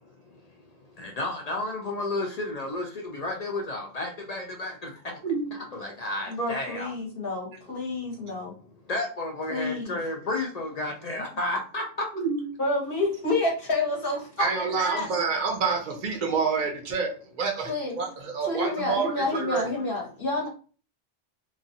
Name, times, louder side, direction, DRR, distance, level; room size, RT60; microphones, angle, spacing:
voice 1, 1.0-4.9 5.5-6.9 8.9-11.8, left 2 dB, 65° left, 0.4 m, -32 dB
voice 2, 6.3-8.5 9.5-10.0 12.6-15.1 17.6-18.0 18.4-20.5, left 2 dB, 45° left, 1.2 m, -29 dB
voice 3, 12.2-12.5 14.4-19.7, right 5 dB, 45° right, 0.7 m, -28 dB
3.0 x 2.4 x 2.6 m
omnidirectional pair, 1.3 m